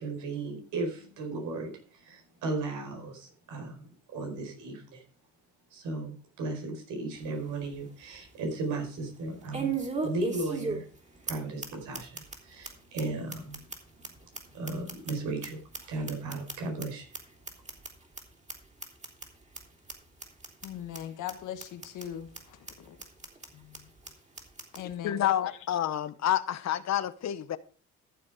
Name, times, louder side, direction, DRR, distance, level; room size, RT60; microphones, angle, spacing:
voice 1, 0.0-5.0 5.7-9.8 10.0-10.9 11.3-13.6 14.5-15.6 15.9-17.1, right 2 dB, 90° right, 4.8 m, -36 dB
sound 1, 7.2-7.3 7.7-7.8 9.5-11.0 11.3-11.4 11.6-11.7 11.9-12.4 12.6-12.7 13.0-13.1 13.3-15.5 15.7-16.8 17.1-17.2 17.5-17.9 18.2-18.3 18.5-18.6 18.8-19.3 19.5-19.6 19.9-20.0 20.2-20.7 20.9-21.0 21.3-21.4 21.6-22.0 22.3-22.4 22.7-22.8 23.0-23.5 23.7-23.8 24.0-24.1 24.4-24.8, right 4 dB, 25° right, 3.4 m, -35 dB
voice 2, 20.6-23.0 23.5-23.9 24.8-25.5, left 10 dB, 80° left, 1.6 m, -40 dB
voice 3, 25.0-27.6, left 11 dB, 60° left, 1.0 m, -29 dB
14.0 x 7.4 x 4.9 m
cardioid pair, 90°, 30 cm